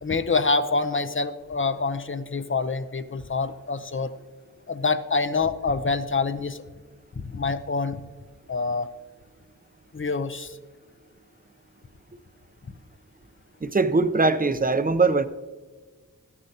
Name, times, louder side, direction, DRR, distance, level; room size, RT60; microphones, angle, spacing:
voice 1, 0.0-4.1 4.7-6.6 7.2-8.0 8.5-8.9 9.9-10.6, left 4 dB, 40° left, 12 dB, 0.6 m, -26 dB
voice 2, 13.6-15.3, right 3 dB, 25° right, 11 dB, 0.6 m, -21 dB
13.5 x 9.8 x 2.8 m, 1.4 s
wide cardioid pair, 55°, 33 cm